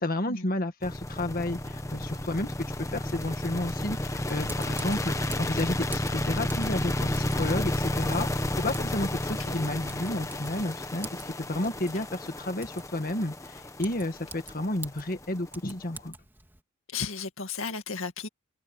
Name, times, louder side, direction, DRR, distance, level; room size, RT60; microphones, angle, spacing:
voice 1, 0.0-16.1, left 1 dB, 40° left, 1.7 m, -32 dB
sound 1, 0.8-16.0, left 1 dB, 15° left, 1.3 m, -32 dB
Typing, 4.3-16.6, right 2 dB, 10° right, 2.4 m, -48 dB
voice 2, 16.9-18.3, left 5 dB, 70° left, 2.2 m, -34 dB
head